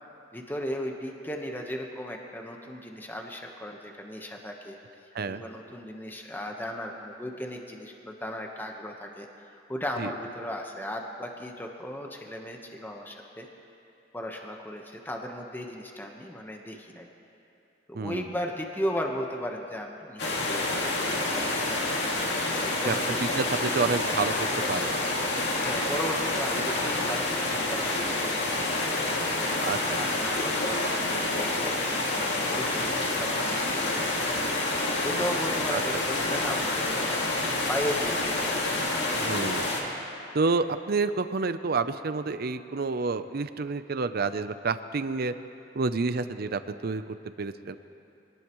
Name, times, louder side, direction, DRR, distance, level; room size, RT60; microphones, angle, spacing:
voice 1, 0.3-4.8 5.3-13.5 14.1-17.1 17.9-21.6 22.6-23.6 25.6-29.5 29.9-37.4 37.7-38.8 39.1-39.3, equal, 10° left, 1 dB, 1.2 m, -36 dB
voice 2, 17.9-18.2 22.8-24.9 29.6-30.0 35.7-35.8 39.1-39.7 40.3-45.3 45.7-47.8, right 4 dB, 55° right, 11 dB, 0.6 m, -29 dB
sound 1, 20.2-39.8, left 2 dB, 65° left, 2.4 m, -28 dB
24.5 x 19.0 x 3.1 m, 2.7 s
head